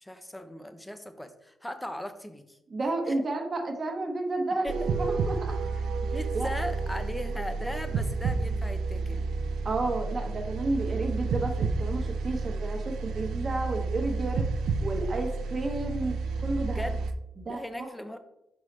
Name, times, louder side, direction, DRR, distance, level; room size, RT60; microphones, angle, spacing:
voice 1, 0.0-2.6 3.1-3.2 4.6-4.8 6.0-9.3 16.6-17.0 17.5-18.2, equal, 5° left, 9 dB, 0.6 m, -38 dB
voice 2, 2.7-5.5 6.3-6.5 9.6-14.4 14.8-16.9 17.4-17.9, right 2 dB, 30° right, 2 dB, 1.0 m, -31 dB
sound 1, 4.7-17.1, right 4 dB, 80° right, 0.5 m, -30 dB
6.2 x 5.4 x 3.2 m, 0.89 s
cardioid pair, 145°, 0 cm